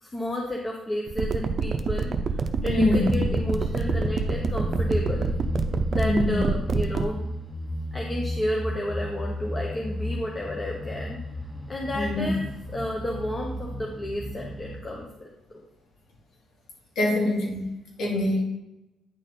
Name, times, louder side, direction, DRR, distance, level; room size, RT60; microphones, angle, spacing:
voice 1, 0.0-2.1 2.6-5.3 5.9-7.2 7.9-11.2 11.7-12.4 12.7-15.3, left 1 dB, 25° left, -1 dB, 1.0 m, -31 dB
sound 1, 1.1-7.1, right 5 dB, 45° right, 0.6 m, -26 dB
voice 2, 2.7-3.1 6.0-6.4 11.9-12.3 17.0-17.6 18.0-18.4, left 2 dB, 80° left, -3 dB, 2.5 m, -24 dB
sound 2, 2.7-14.8, left 1 dB, ahead, 0.9 m, -33 dB
9.6 x 4.2 x 3.8 m, 0.93 s
cardioid pair, 105°, 0 cm